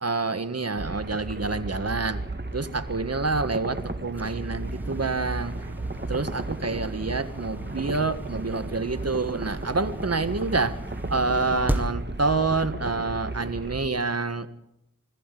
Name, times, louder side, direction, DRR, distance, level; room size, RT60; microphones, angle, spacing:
voice 1, 0.0-2.2 2.5-5.5 6.1-10.8 11.1-14.5, right 3 dB, 50° right, 11 dB, 1.5 m, -27 dB
sound 1, 0.8-13.9, right 2 dB, 30° right, 2.1 m, -35 dB
sound 2, 2.5-13.5, right 1 dB, 5° right, 1.9 m, -37 dB
21.5 x 14.0 x 8.4 m, 0.83 s
wide cardioid pair, 40°, 33 cm